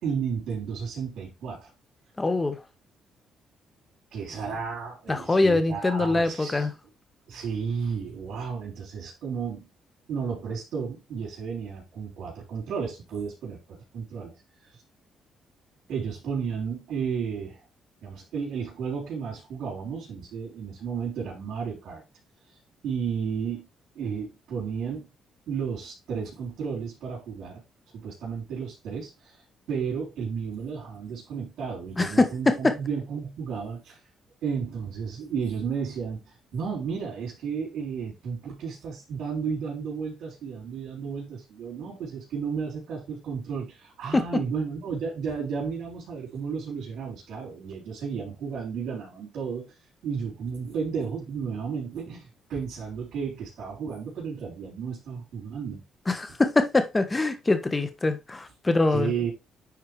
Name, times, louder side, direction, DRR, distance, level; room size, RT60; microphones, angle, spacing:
voice 1, 0.0-1.7 4.1-6.7 7.3-9.7 10.1-14.3 14.6-14.8 15.9-17.6 18.0-22.0 22.5-22.6 22.8-23.7 23.9-25.1 25.5-27.6 28.0-34.0 34.4-49.7 50.0-55.8 58.9-59.3, right 6 dB, 75° right, 4.1 m, -33 dB
voice 2, 2.2-2.6 5.1-6.7 32.0-32.7 44.1-44.2 56.1-59.1, left 2 dB, 20° left, 1.4 m, -23 dB
10.0 x 4.5 x 3.4 m
cardioid pair, 90°, 0 cm